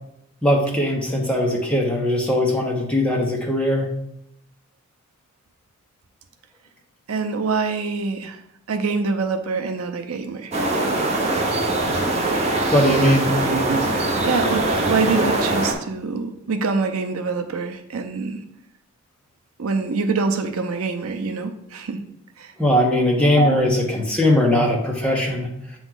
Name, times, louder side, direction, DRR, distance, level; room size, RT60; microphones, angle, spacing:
voice 1, 0.4-3.9 12.7-13.3 22.6-25.5, left 1 dB, 5° left, -1 dB, 0.9 m, -20 dB
voice 2, 7.1-8.4 8.7-10.5 13.5-13.8 14.2-18.4 19.6-22.0 22.4-22.5 23.4-23.6, right 4 dB, 75° right, 5 dB, 0.6 m, -25 dB
sound 1, 10.5-15.7, right 2 dB, 30° right, 0.7 m, -22 dB
8.1 x 3.1 x 3.7 m, 0.79 s
head